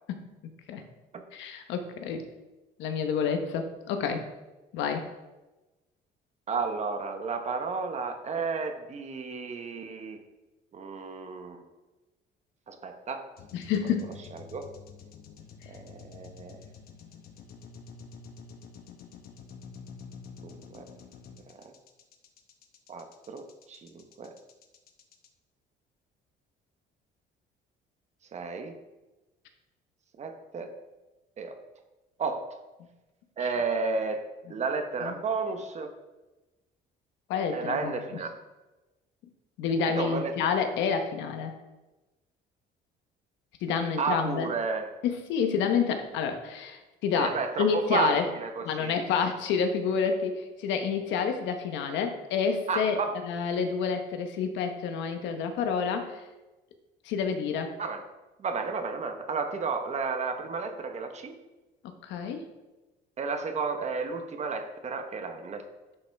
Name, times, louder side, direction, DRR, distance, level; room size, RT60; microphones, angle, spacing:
voice 1, 1.3-2.3 2.8-4.2 4.7-5.1 13.5-14.2 35.0-35.1 37.3-38.0 39.6-41.5 43.6-44.5 45.0-48.2 48.6-53.0 53.2-56.2 57.0-57.7 61.8-62.4, left 6 dB, 85° left, 6 dB, 1.1 m, -29 dB
voice 2, 6.5-10.2 10.7-11.6 12.7-13.3 13.8-13.9 14.3-14.7 15.7-16.6 20.4-20.9 21.5-21.7 22.9-24.4 28.3-28.8 30.2-30.8 31.4-31.6 32.2-32.6 33.4-35.9 37.5-38.4 39.9-40.5 44.0-44.9 47.2-49.0 52.7-53.2 57.8-58.0 58.4-61.4 63.2-65.7, right 4 dB, 35° right, 6 dB, 1.0 m, -32 dB
sound 1, 13.4-25.3, left 5 dB, 55° left, 0.9 m, -48 dB
10.5 x 5.7 x 3.5 m, 1.1 s
cardioid pair, 130°, 19 cm